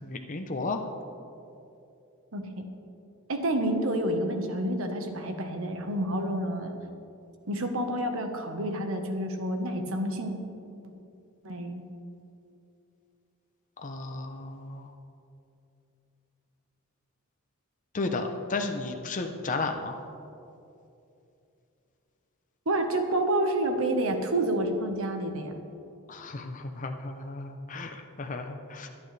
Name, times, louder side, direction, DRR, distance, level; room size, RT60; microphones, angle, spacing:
voice 1, 0.0-0.8 13.8-14.9 17.9-20.0 26.1-28.9, left 3 dB, 35° left, 4 dB, 0.7 m, -34 dB
voice 2, 2.3-2.6 3.3-6.8 7.5-10.4 11.4-11.8 22.6-25.5, right 1 dB, 70° right, 5 dB, 1.2 m, -29 dB
24.0 x 8.9 x 3.3 m, 2.7 s
head